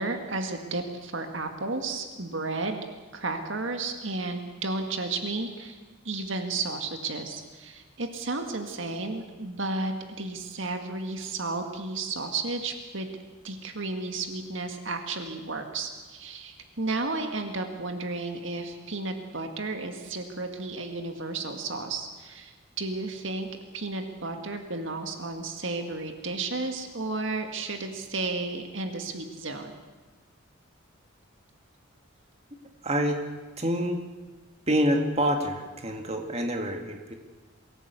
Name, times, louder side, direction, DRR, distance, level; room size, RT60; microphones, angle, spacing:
voice 1, 0.0-2.9 3.1-5.8 6.1-13.1 13.4-23.5 23.7-29.7, right 3 dB, 65° right, 5 dB, 1.9 m, -33 dB
voice 2, 32.8-33.2 33.6-34.0 34.7-37.1, equal, 30° right, 3 dB, 2.2 m, -27 dB
23.5 x 16.5 x 8.3 m, 1.3 s
head